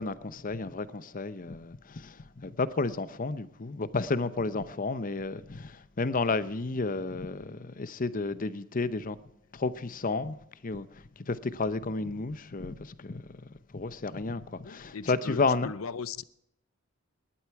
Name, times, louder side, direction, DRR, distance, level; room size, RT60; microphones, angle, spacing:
voice 1, 0.0-9.2 9.5-10.4 10.6-13.4 13.7-15.7, left 3 dB, 40° left, 0.8 m, -32 dB
voice 2, 14.6-16.2, left 5 dB, 75° left, 0.6 m, -38 dB
19.0 x 12.0 x 4.7 m
head